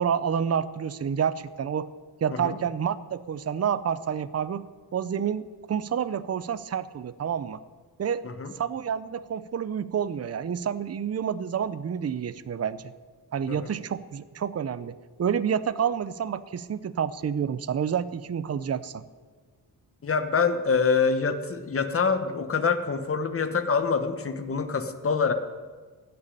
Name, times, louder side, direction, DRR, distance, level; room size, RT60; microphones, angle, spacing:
voice 1, 0.0-1.9 2.2-4.6 4.9-7.6 8.0-8.2 8.6-12.8 13.3-19.0, right 8 dB, 40° right, 15 dB, 0.6 m, -29 dB
voice 2, 20.0-25.3, left 5 dB, 35° left, 9 dB, 1.1 m, -25 dB
16.5 x 6.9 x 9.8 m, 1.5 s
wide cardioid pair, 130°, 39 cm